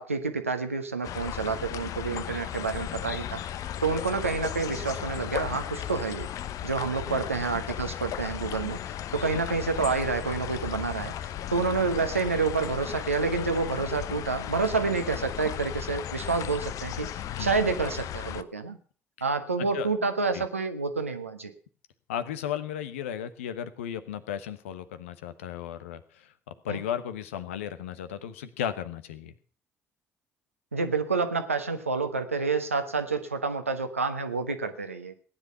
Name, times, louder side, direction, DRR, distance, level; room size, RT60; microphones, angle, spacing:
voice 1, 0.0-3.4 3.8-6.3 6.6-11.1 11.5-17.1 17.4-18.8 19.2-21.5 26.7-26.8 30.7-35.2, right 4 dB, 85° right, 7 dB, 1.2 m, -28 dB
sound 1, 1.0-18.4, left 11 dB, 50° left, 0.8 m, -36 dB
voice 2, 22.1-26.3 26.6-29.3, left 9 dB, 75° left, 11 dB, 1.1 m, -35 dB
17.5 x 10.0 x 5.8 m, 0.43 s
figure-of-eight pair, 50°, 7 cm